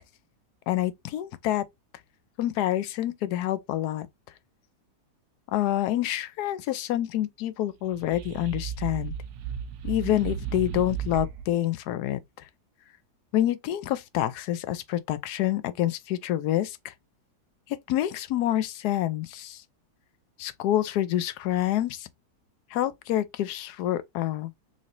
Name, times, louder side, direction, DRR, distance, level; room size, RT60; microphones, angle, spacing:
voice 1, 0.7-1.6 2.4-4.1 5.5-9.1 9.8-12.2 13.3-16.9 17.7-19.6 20.4-22.1 22.7-24.5, left 13 dB, 80° left, 1.2 m, -27 dB
sound 1, 7.8-11.5, right 8 dB, 80° right, 1.2 m, -34 dB
3.8 x 3.2 x 2.5 m
omnidirectional pair, 1.7 m